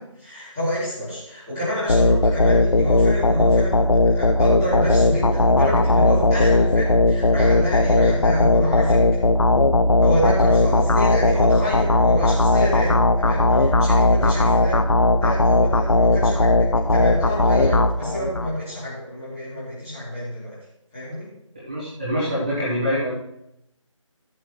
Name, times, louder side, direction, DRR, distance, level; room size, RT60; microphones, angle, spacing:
voice 1, 0.0-9.2 10.0-14.8 15.2-20.6 20.9-21.3, equal, 5° left, -12 dB, 2.8 m, -28 dB
sound 1, 1.9-18.5, left 2 dB, 65° left, 0.8 m, -18 dB
voice 2, 21.5-23.1, equal, 15° right, -10 dB, 1.3 m, -25 dB
15.5 x 8.5 x 3.1 m, 0.80 s
figure-of-eight pair, 180°, 17 cm